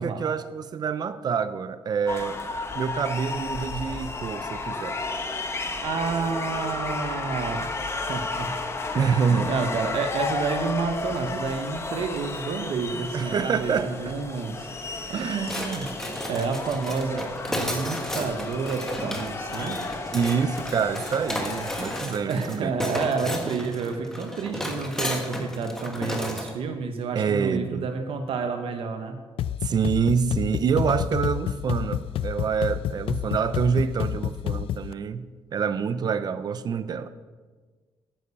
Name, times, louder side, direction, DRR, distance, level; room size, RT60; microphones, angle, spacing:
voice 1, 0.0-2.4 2.7-5.0 8.9-9.5 13.1-13.9 15.1-15.4 20.1-22.7 27.1-27.9 29.6-37.1, right 6 dB, 45° right, 13 dB, 0.7 m, -26 dB
sound 1, 2.1-22.0, left 3 dB, 30° left, 1.1 m, -33 dB
voice 2, 5.8-7.8 8.1-8.6 8.9-14.7 15.1-16.0 16.3-19.8 22.3-29.2, right 5 dB, 70° right, 5 dB, 1.2 m, -29 dB
sound 2, 15.4-26.5, equal, 5° left, 1.6 m, -33 dB
sound 3, 29.4-34.9, left 10 dB, 70° left, 0.4 m, -29 dB
9.9 x 9.1 x 7.0 m, 1.4 s
cardioid pair, 135°, 10 cm